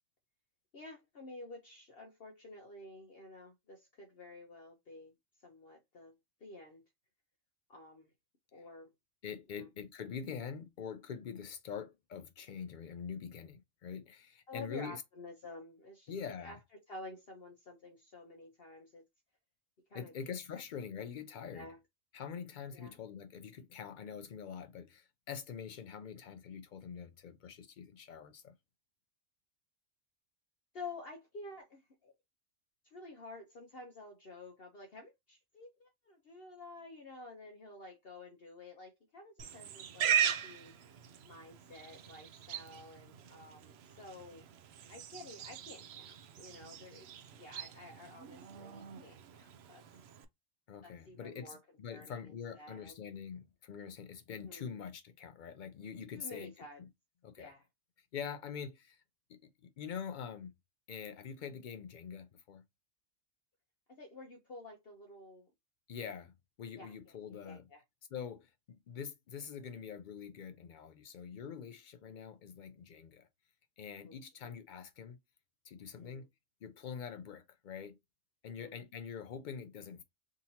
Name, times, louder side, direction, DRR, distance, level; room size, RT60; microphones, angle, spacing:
voice 1, 0.7-5.1 5.4-6.2 6.4-6.8 7.7-8.1 8.5-8.9 9.5-9.7 14.5-19.0 19.9-20.1 21.5-21.8 22.7-23.0 30.7-32.1 32.8-40.7 41.3-44.5 44.9-49.8 50.8-51.6 51.9-52.9 54.4-54.7 56.1-56.8 57.4-57.6 63.9-65.5 66.8-67.8 72.1-72.2 74.0-74.6 75.9-76.3 78.4-78.8, left 2 dB, 50° left, 0.9 m, -51 dB
voice 2, 9.2-15.0 16.1-16.6 19.9-21.7 22.1-28.5 50.7-56.5 57.2-57.5 58.1-59.0 59.3-60.5 60.9-62.6 65.9-66.3 66.6-67.6 68.1-73.3 73.8-75.2 75.6-76.3 76.6-78.0 78.4-80.0, left 7 dB, 80° left, 0.4 m, -45 dB
Livestock farm animals working animals, 39.4-50.3, right 9 dB, 65° right, 0.7 m, -39 dB
3.7 x 2.8 x 2.7 m
omnidirectional pair, 1.4 m